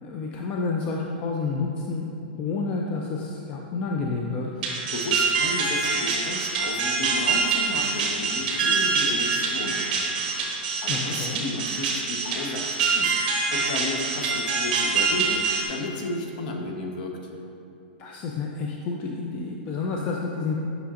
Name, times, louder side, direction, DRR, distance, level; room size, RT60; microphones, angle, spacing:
voice 1, 0.0-2.1 2.3-4.5 10.9-11.4 18.0-20.6, left 4 dB, 25° left, -1 dB, 0.4 m, -29 dB
sound 1, 4.6-15.6, right 4 dB, 45° right, 1.5 m, -25 dB
voice 2, 4.9-17.2, left 2 dB, 50° left, 2 dB, 0.9 m, -33 dB
8.4 x 6.1 x 2.5 m, 2.7 s
supercardioid pair, 170°, 5 cm